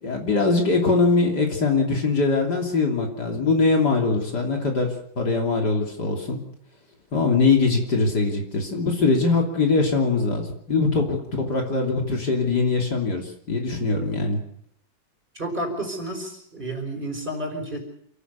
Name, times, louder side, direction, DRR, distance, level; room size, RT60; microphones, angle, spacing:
voice 1, 0.0-4.9 5.2-6.4 7.1-14.4, left 3 dB, 55° left, 1 dB, 3.6 m, -22 dB
voice 2, 15.3-17.8, right 1 dB, 25° right, 2 dB, 5.3 m, -31 dB
28.5 x 14.0 x 6.9 m, 0.71 s
omnidirectional pair, 2.1 m